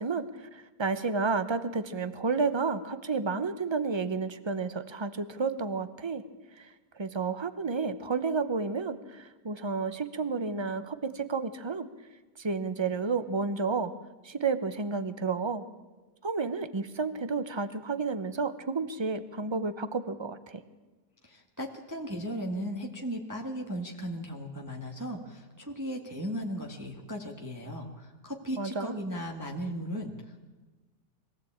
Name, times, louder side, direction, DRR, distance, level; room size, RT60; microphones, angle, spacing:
voice 1, 0.0-6.2 6.6-11.9 12.4-13.9 14.2-15.6 16.2-20.6 28.6-29.0, right 4 dB, 30° right, 12 dB, 0.5 m, -31 dB
voice 2, 21.2-30.5, equal, 10° right, 1 dB, 1.6 m, -37 dB
22.5 x 15.5 x 8.7 m, 1.3 s
omnidirectional pair, 1.8 m